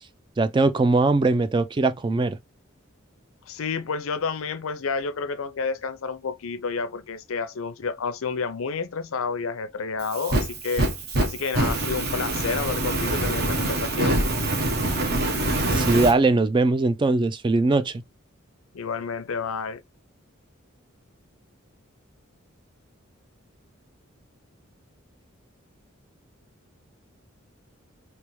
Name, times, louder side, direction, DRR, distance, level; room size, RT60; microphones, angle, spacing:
voice 1, 0.4-2.4 15.7-18.0, right 3 dB, 25° right, 0.3 m, -21 dB
voice 2, 3.5-10.8 11.2-14.2 18.7-19.8, left 5 dB, 90° left, 0.5 m, -30 dB
Fire, 10.0-16.1, right 1 dB, 50° right, 1.0 m, -25 dB
3.3 x 3.0 x 3.0 m
head